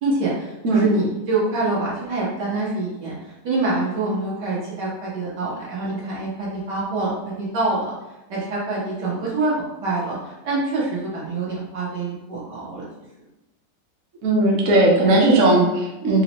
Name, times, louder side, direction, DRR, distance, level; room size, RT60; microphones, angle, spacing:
voice 1, 0.0-3.2 3.4-7.9 8.3-12.9, right 2 dB, 80° right, -6 dB, 1.8 m, -25 dB
voice 2, 14.2-16.2, right 2 dB, 60° right, -2 dB, 1.0 m, -17 dB
4.8 x 2.1 x 2.9 m, 1.0 s
omnidirectional pair, 1.8 m